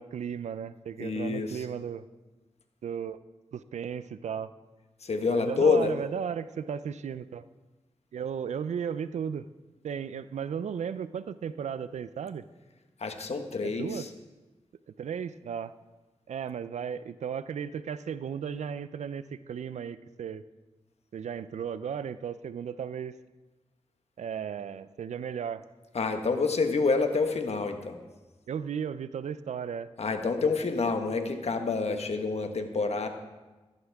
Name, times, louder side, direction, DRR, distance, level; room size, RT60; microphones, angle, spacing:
voice 1, 0.0-2.0 2.8-3.2 3.5-4.5 5.3-7.5 8.1-9.5 9.8-12.4 13.6-14.1 15.0-15.7 16.3-20.4 21.1-23.1 24.2-25.6 28.5-29.9, right 7 dB, 90° right, 15 dB, 0.5 m, -35 dB
voice 2, 1.0-1.6 5.0-5.9 13.0-14.1 25.9-28.0 30.0-33.1, left 4 dB, 65° left, 6 dB, 1.4 m, -27 dB
15.0 x 14.5 x 3.6 m, 1.2 s
cardioid pair, 50°, 12 cm